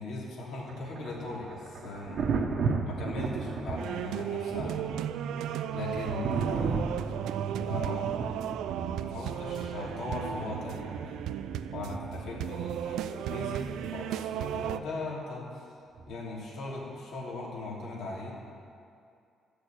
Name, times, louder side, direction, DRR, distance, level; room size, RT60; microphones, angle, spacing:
voice 1, 0.0-2.2 2.8-4.9 5.7-7.0 7.7-8.4 9.0-11.2 11.7-15.6 16.1-18.3, left 2 dB, 80° left, -4 dB, 3.2 m, -39 dB
Thunder, 0.7-14.3 16.0-16.2, right 4 dB, 60° right, 1.2 m, -36 dB
sound 1, 3.8-14.8, right 10 dB, 85° right, 0.4 m, -35 dB
13.0 x 6.7 x 8.8 m, 2.5 s
cardioid pair, 90°, 0 cm